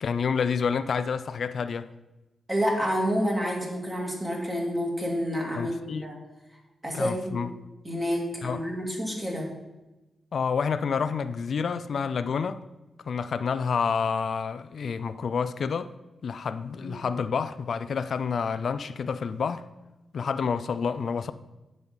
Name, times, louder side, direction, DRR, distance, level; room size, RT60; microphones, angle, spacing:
voice 1, 0.0-1.9 5.6-6.0 6.9-7.5 8.4-8.6 10.3-12.6 13.1-15.9 16.2-19.6 20.1-21.3, left 6 dB, 60° left, 0.4 m, -28 dB
voice 2, 2.5-6.2 6.8-7.4 7.8-9.5 16.8-17.0, equal, 15° right, 2.3 m, -29 dB
7.8 x 5.5 x 7.2 m
wide cardioid pair, 130°, 0 cm